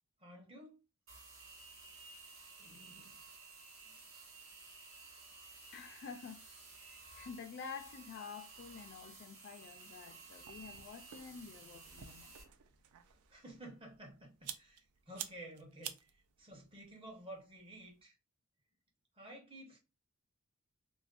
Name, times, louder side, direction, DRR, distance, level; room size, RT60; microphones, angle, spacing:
voice 1, 0.2-0.8 2.6-3.2 3.8-4.0 13.1-18.2 19.2-19.8, right 1 dB, 25° right, 0.7 m, -53 dB
sound 1, 1.1-12.4, right 3 dB, 65° right, 1.0 m, -55 dB
voice 2, 5.7-6.4 6.8-12.3, left 6 dB, 50° left, 0.3 m, -49 dB
sound 2, 8.9-18.0, right 10 dB, 85° right, 0.3 m, -53 dB
2.5 x 2.1 x 2.4 m
head